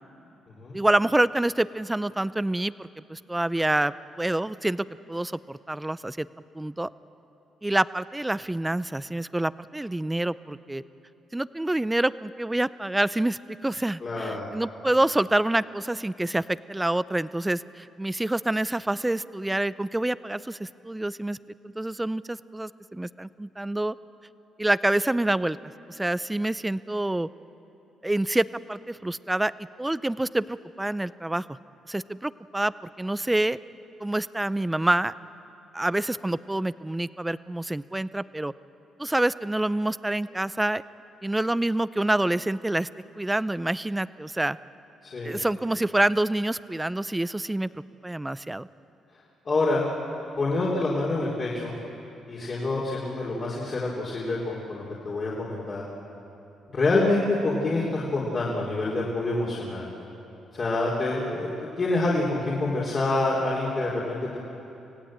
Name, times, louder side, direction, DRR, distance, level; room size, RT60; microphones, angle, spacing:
voice 1, 0.7-6.3 6.5-6.9 7.6-10.8 11.3-21.4 21.6-23.9 24.6-25.6 25.9-27.3 28.0-29.5 29.8-31.5 31.9-32.7 33.0-33.6 34.0-35.1 35.7-38.5 39.0-40.8 41.2-42.9 43.2-44.6 45.2-48.7, right 1 dB, 10° right, 17 dB, 0.5 m, -27 dB
voice 2, 14.0-14.5 45.0-45.5 49.5-49.8 50.4-51.8 52.3-55.8 56.7-59.9 60.5-61.5 61.8-64.4, left 2 dB, 40° left, -5 dB, 3.5 m, -27 dB
26.5 x 16.5 x 8.8 m, 2.9 s
cardioid pair, 90°, 0 cm